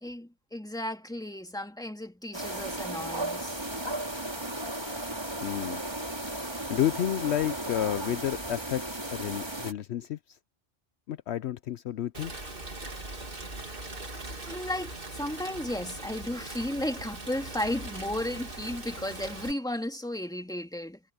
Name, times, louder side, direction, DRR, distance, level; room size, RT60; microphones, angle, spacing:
voice 1, 0.0-3.6 14.5-21.0, left 1 dB, 5° left, 2.0 m, -34 dB
sound 1, 2.3-9.7, right 1 dB, 20° right, 3.1 m, -35 dB
voice 2, 5.4-5.8 6.7-8.8 9.1-10.2 11.1-12.3, left 11 dB, 70° left, 0.9 m, -30 dB
Rain, 12.1-19.5, right 2 dB, 50° right, 3.0 m, -40 dB
omnidirectional pair, 1.2 m